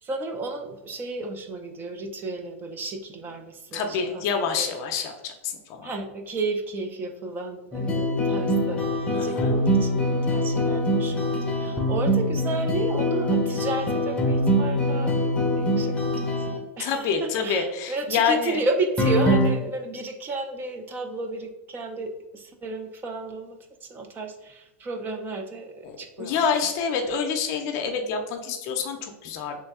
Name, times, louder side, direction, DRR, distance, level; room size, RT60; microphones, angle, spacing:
voice 1, 0.0-4.2 4.5-4.7 5.8-15.2 15.6-26.4, right 2 dB, 25° right, 5 dB, 0.5 m, -32 dB
voice 2, 3.7-5.9 9.1-9.5 16.8-18.6 25.8-29.6, left 6 dB, 50° left, 5 dB, 0.5 m, -27 dB
sound 1, 7.7-16.6 19.0-19.5, equal, 15° left, 0.7 m, -23 dB
3.1 x 2.6 x 3.5 m, 0.93 s
hypercardioid pair, 115°, 7 cm